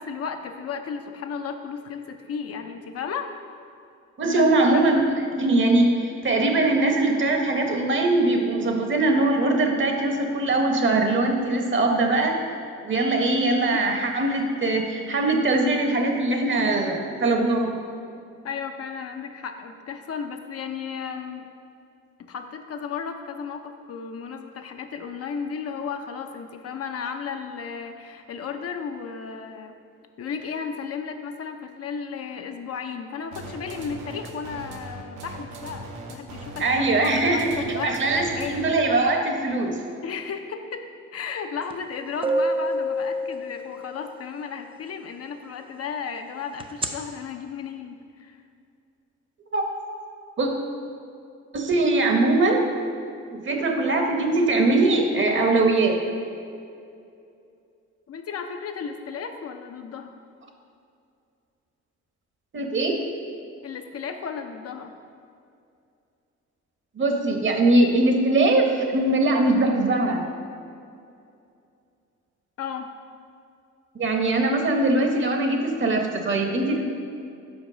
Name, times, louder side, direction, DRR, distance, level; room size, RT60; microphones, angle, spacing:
voice 1, 0.0-3.3 4.2-4.9 18.4-21.5 22.2-29.7 30.2-38.7 40.0-40.8 41.1-48.4 58.1-60.1 63.6-64.9 72.6-72.9, left 6 dB, 50° left, 5 dB, 0.6 m, -34 dB
voice 2, 4.2-5.0 5.4-12.4 12.8-17.8 36.6-39.8 49.5-49.6 50.4-50.5 51.5-52.6 53.3-56.0 62.5-63.0 67.0-70.3 74.0-76.8, right 2 dB, 40° right, 3 dB, 1.0 m, -21 dB
sound 1, 33.3-38.9, right 2 dB, 70° right, 0.9 m, -39 dB
sound 2, 41.7-41.8 42.2-44.0 46.6-46.9, right 1 dB, 20° right, 0.5 m, -25 dB
5.2 x 4.4 x 6.2 m, 2.5 s
cardioid pair, 90°, 30 cm